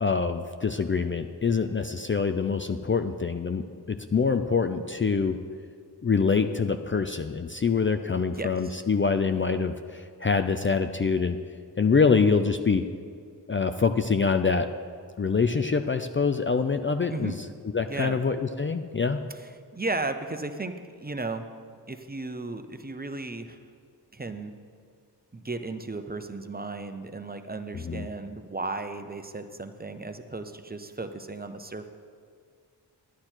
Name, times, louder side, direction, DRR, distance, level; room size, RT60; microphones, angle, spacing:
voice 1, 0.0-5.4 6.0-11.4 11.8-12.8 13.5-14.7 15.2-17.3 17.7-19.2 27.8-28.1, left 5 dB, 30° left, 8 dB, 0.5 m, -25 dB
voice 2, 8.3-8.8 17.1-17.4 17.9-18.2 19.3-21.4 21.9-23.6 24.1-24.5 25.3-31.9, right 3 dB, 20° right, 8 dB, 0.7 m, -35 dB
11.5 x 9.7 x 4.5 m, 2.1 s
cardioid pair, 55°, 41 cm